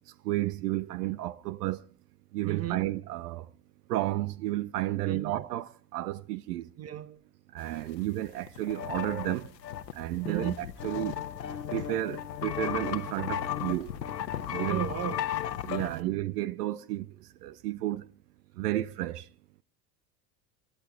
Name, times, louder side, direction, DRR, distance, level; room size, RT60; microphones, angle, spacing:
voice 1, 0.2-1.8 2.3-3.5 3.9-6.7 7.5-9.5 9.9-11.2 11.7-13.9 14.5-14.8 15.6-18.1 18.6-19.3, right 16 dB, 70° right, 0.7 m, -32 dB
voice 2, 2.4-2.8 5.1-5.4 6.8-7.2 10.3-10.6 14.7-15.4 15.8-16.2, right 11 dB, 30° right, 1.1 m, -35 dB
sound 1, 8.2-8.3 8.5-16.0, left 10 dB, 80° left, 1.2 m, -35 dB
27.5 x 13.0 x 3.6 m
figure-of-eight pair, 70°, 49 cm